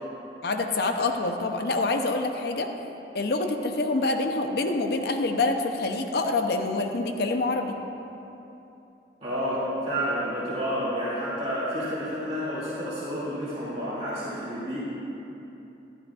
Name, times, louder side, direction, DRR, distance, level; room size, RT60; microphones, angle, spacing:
voice 1, 0.4-2.7 3.1-7.8, left 2 dB, 60° left, 5 dB, 0.6 m, -26 dB
voice 2, 9.2-14.8, equal, 40° right, -9 dB, 2.4 m, -30 dB
12.5 x 12.0 x 2.4 m, 2.9 s
head